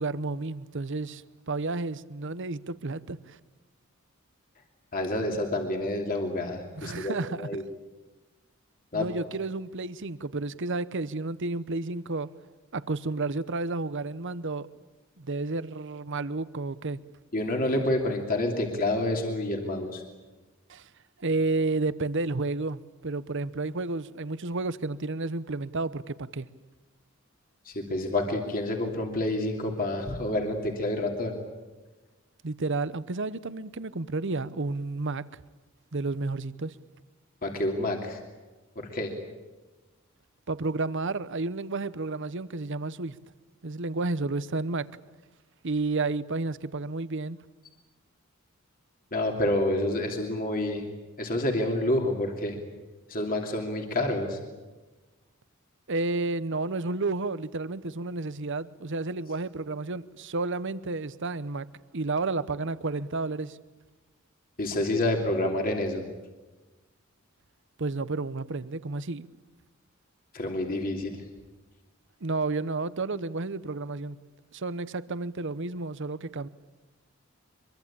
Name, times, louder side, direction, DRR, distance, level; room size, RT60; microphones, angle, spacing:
voice 1, 0.0-3.4 6.7-7.6 8.9-12.3 12.7-14.7 15.2-17.0 20.7-20.9 21.2-26.5 32.4-35.3 35.9-36.7 40.5-43.2 43.6-44.9 45.6-47.4 55.9-61.6 61.9-63.6 67.8-69.3 72.2-74.2 74.5-76.5, right 3 dB, 60° right, 0.9 m, -31 dB
voice 2, 4.9-7.6 8.9-9.1 17.3-20.0 27.6-31.4 37.4-38.2 38.8-39.1 49.1-50.8 51.2-52.6 53.1-54.4 64.6-66.0 70.3-71.2, left 1 dB, 45° left, 2.9 m, -28 dB
24.5 x 23.5 x 8.8 m
head